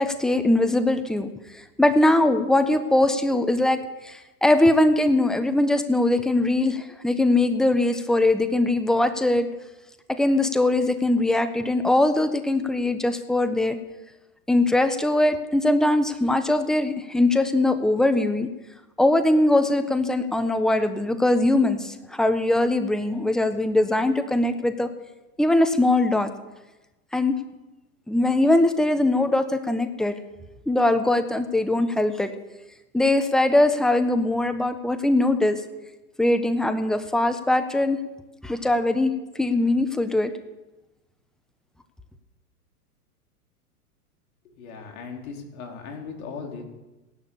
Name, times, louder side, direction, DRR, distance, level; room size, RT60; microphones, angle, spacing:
voice 1, 0.0-1.3 1.8-9.5 10.1-13.8 14.5-18.5 19.0-24.9 25.4-26.3 27.1-27.3 28.1-30.2 30.7-32.3 32.9-35.6 36.2-38.0 38.4-39.1 39.4-40.3, left 2 dB, ahead, 9 dB, 1.2 m, -21 dB
voice 2, 44.4-46.6, left 5 dB, 65° left, 2 dB, 4.8 m, -38 dB
17.5 x 11.5 x 7.3 m, 1.1 s
hypercardioid pair, 115°, 45 cm